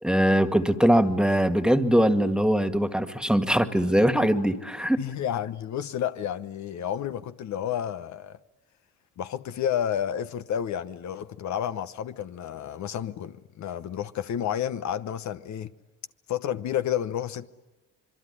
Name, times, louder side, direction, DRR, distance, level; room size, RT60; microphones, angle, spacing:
voice 1, 0.0-5.0, equal, 5° right, 1.8 m, -22 dB
voice 2, 5.0-8.4 9.2-15.7 16.3-17.5, left 9 dB, 70° left, 1.0 m, -30 dB
26.5 x 23.0 x 9.9 m
cardioid pair, 90°, 30 cm